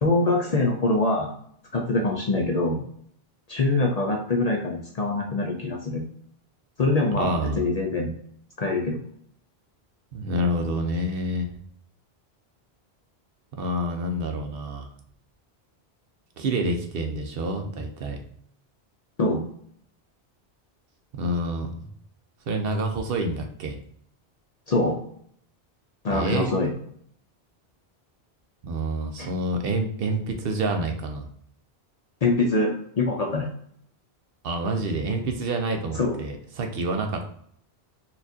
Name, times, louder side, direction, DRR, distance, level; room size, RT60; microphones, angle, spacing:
voice 1, 0.0-1.3 1.7-2.8 3.5-6.0 6.8-8.1 8.6-9.0 19.2-19.4 24.7-25.0 26.0-26.7 29.2-29.3 32.2-33.5 35.9-36.2, left 2 dB, 50° left, 1 dB, 0.5 m, -24 dB
voice 2, 7.2-7.6 10.1-11.5 13.5-14.9 16.4-18.2 21.1-21.9 22.5-23.8 26.1-26.5 28.6-31.3 34.4-37.3, right 1 dB, 70° right, 4 dB, 0.8 m, -28 dB
4.2 x 2.4 x 2.6 m, 0.65 s
omnidirectional pair, 1.1 m